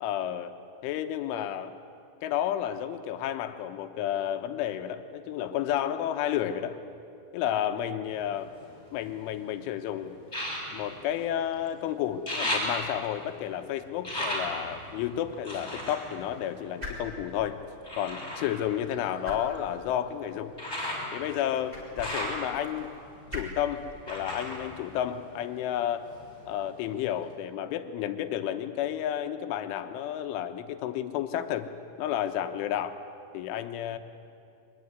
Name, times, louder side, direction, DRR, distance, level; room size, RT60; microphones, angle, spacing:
voice 1, 0.0-0.6 0.8-1.7 2.2-6.8 7.3-8.5 8.9-10.2 10.7-17.6 17.9-20.5 21.1-22.9 23.3-26.1 26.5-31.7 32.0-33.0 33.3-34.0, left 10 dB, 90° left, 8 dB, 3.5 m, -31 dB
sound 1, 8.1-9.4 10.2-11.8 12.0-17.2 17.8-25.7 26.0-26.8 27.3-27.4, left 1 dB, 10° left, 5.6 m, -37 dB
sound 2, 16.7-27.3, left 1 dB, 10° right, 4.2 m, -47 dB
23.0 x 20.5 x 9.5 m, 2.4 s
omnidirectional pair, 5.5 m